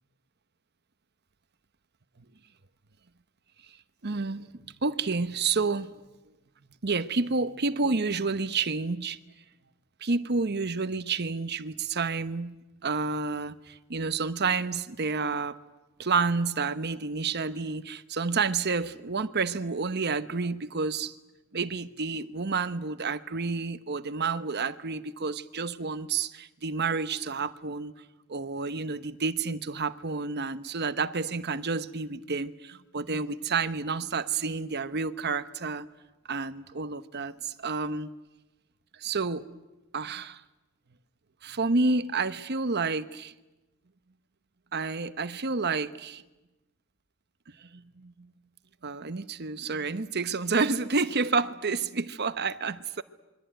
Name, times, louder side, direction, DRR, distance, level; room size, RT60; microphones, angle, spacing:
voice 1, 4.0-5.9 6.8-9.2 10.0-12.5 12.8-15.6 16.0-21.2 21.5-27.9 28.3-35.9 36.3-38.1 39.0-39.6 39.9-40.4 41.4-43.3 44.7-46.2 47.6-48.3 48.8-53.0, right 4 dB, 50° right, 1.0 m, -30 dB
27.0 x 23.5 x 9.1 m
head